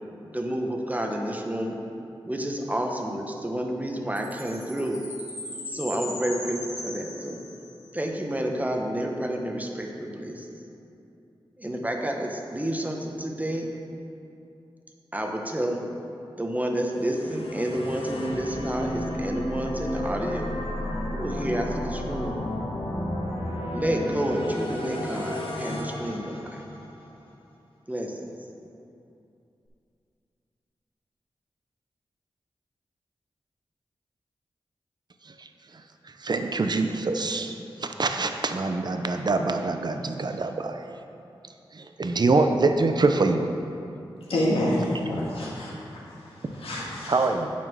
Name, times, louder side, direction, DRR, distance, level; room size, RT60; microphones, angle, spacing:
voice 1, 0.2-1.8 2.2-5.0 5.7-7.4 7.9-10.6 11.6-13.7 15.1-15.8 16.3-20.5 21.1-22.4 23.7-26.6 27.9-28.3, right 1 dB, 15° right, 1 dB, 1.1 m, -30 dB
Chime, 4.2-7.9, left 1 dB, 35° left, 2.1 m, -39 dB
sound 1, 16.9-27.1, left 1 dB, 70° left, 1.3 m, -32 dB
voice 2, 36.2-41.0 41.7-43.5 47.1-47.5, right 3 dB, 50° right, 6 dB, 0.6 m, -25 dB
voice 3, 44.3-47.3, left 1 dB, 85° left, -6 dB, 1.9 m, -28 dB
9.1 x 4.4 x 6.2 m, 2.7 s
cardioid pair, 45°, 9 cm